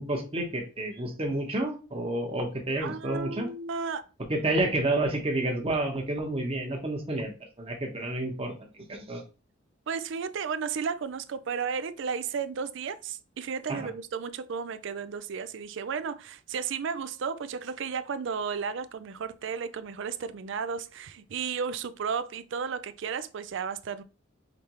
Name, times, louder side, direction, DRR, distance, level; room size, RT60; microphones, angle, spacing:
voice 1, 0.0-3.5 4.3-7.3 7.6-9.2 13.7-13.9, right 1 dB, 30° right, 1.0 m, -30 dB
voice 2, 2.8-4.0 9.9-24.0, right 6 dB, 70° right, 0.4 m, -33 dB
5.1 x 3.2 x 3.0 m
head